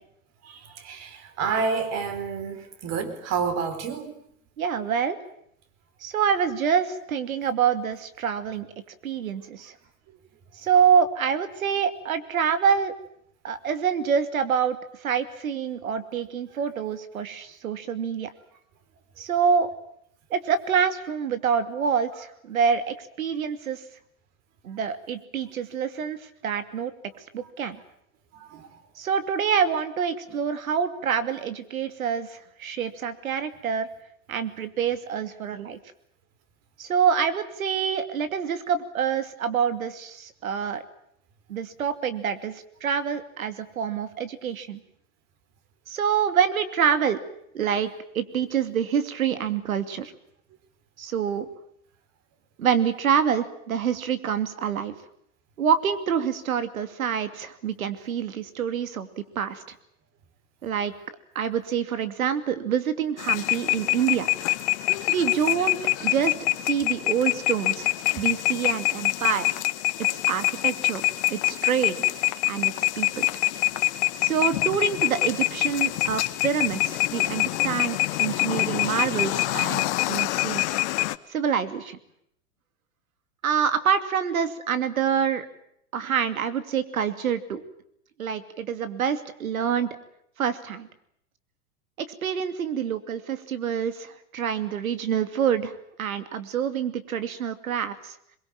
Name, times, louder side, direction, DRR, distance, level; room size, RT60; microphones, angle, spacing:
voice 1, 0.4-4.2 28.3-28.7 30.3-30.4, right 5 dB, 40° right, 9 dB, 4.4 m, -29 dB
voice 2, 4.6-5.2 6.0-8.7 9.0-9.7 10.6-12.9 13.4-18.3 19.2-19.7 20.3-23.8 24.6-26.9 27.3-27.8 29.0-33.9 34.3-35.8 36.8-40.8 41.5-44.8 45.9-47.2 47.5-47.9 48.1-50.1 51.0-51.5 52.6-55.0 55.6-59.6 60.6-60.9 61.3-64.3 65.1-69.6 70.3-71.0 71.3-72.0 72.5-73.3 74.2-80.6 81.3-82.0 83.4-85.5 85.9-87.6 88.2-89.9 90.4-90.9 92.0-95.7 96.0-98.2, right 7 dB, 85° right, 11 dB, 2.6 m, -26 dB
sound 1, 63.2-81.2, left 19 dB, 55° left, 1.3 m, -25 dB
22.5 x 22.5 x 8.8 m, 0.72 s
hypercardioid pair, 120°, 40 cm